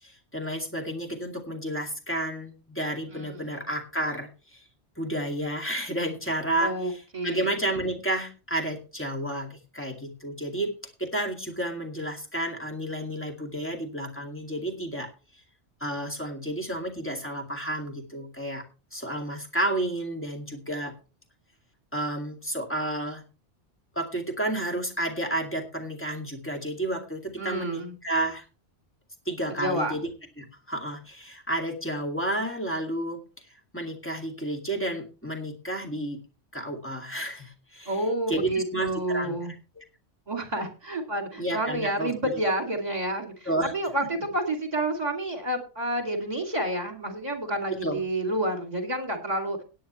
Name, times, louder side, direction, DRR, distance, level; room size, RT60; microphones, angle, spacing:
voice 1, 0.0-4.6 5.0-10.7 11.0-15.4 15.8-18.6 18.9-20.9 21.9-23.2 23.9-28.5 29.3-30.1 30.4-33.2 33.7-36.2 36.5-38.0 38.3-39.4 39.8-39.9 41.4-42.1 43.5-43.7 47.7-48.0, right 1 dB, 10° left, 2 dB, 2.2 m, -31 dB
voice 2, 3.1-3.5 6.6-7.5 27.4-27.9 29.4-29.9 37.9-39.5 40.3-49.6, right 1 dB, 35° right, 4 dB, 2.6 m, -29 dB
17.0 x 9.6 x 3.1 m, 0.33 s
omnidirectional pair, 1.2 m